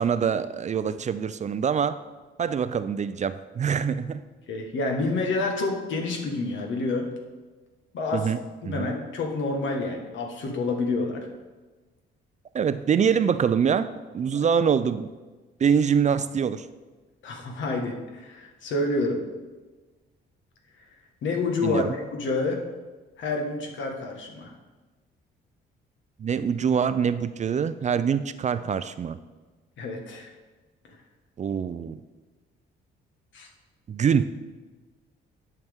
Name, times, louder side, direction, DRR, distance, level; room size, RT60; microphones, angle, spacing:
voice 1, 0.0-2.0 2.4-4.2 8.1-8.4 8.6-8.9 12.5-13.9 14.1-15.1 15.6-16.7 21.6-21.9 26.2-29.2 31.4-32.0 33.9-34.2, right 7 dB, 35° right, 13 dB, 0.4 m, -24 dB
voice 2, 4.5-7.1 7.9-8.3 8.6-11.2 14.3-14.4 17.2-19.2 21.2-22.6 23.2-24.5 29.8-30.3 33.3-33.5, left 3 dB, 70° left, 2 dB, 1.5 m, -28 dB
11.0 x 5.8 x 3.6 m, 1.3 s
cardioid pair, 90°, 20 cm